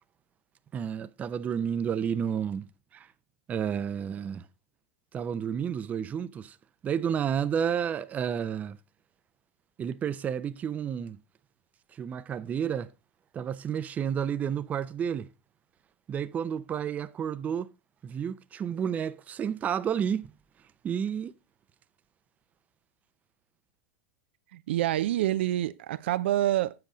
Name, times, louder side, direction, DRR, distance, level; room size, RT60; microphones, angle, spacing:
voice 1, 0.7-3.1 3.5-4.5 5.1-6.6 6.8-8.8 9.8-11.2 11.9-12.9 13.3-15.3 16.1-17.7 18.0-20.3 20.8-21.3, right 8 dB, 25° right, 0.5 m, -31 dB
voice 2, 24.5-26.7, right 13 dB, 70° right, 0.4 m, -27 dB
7.7 x 5.9 x 5.0 m
hypercardioid pair, 115°, 6 cm